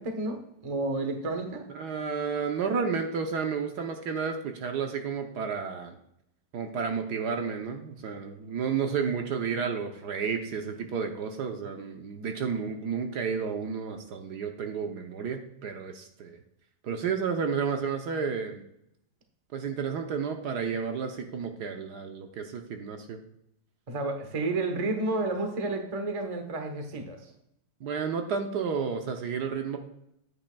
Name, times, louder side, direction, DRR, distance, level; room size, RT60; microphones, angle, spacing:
voice 1, 0.0-1.6 23.9-27.2, right 2 dB, 25° right, 5 dB, 0.8 m, -31 dB
voice 2, 1.7-5.9 6.5-16.4 16.8-18.6 19.5-23.2 27.8-29.8, right 6 dB, 65° right, 4 dB, 1.3 m, -31 dB
9.4 x 9.0 x 2.3 m, 0.76 s
omnidirectional pair, 2.0 m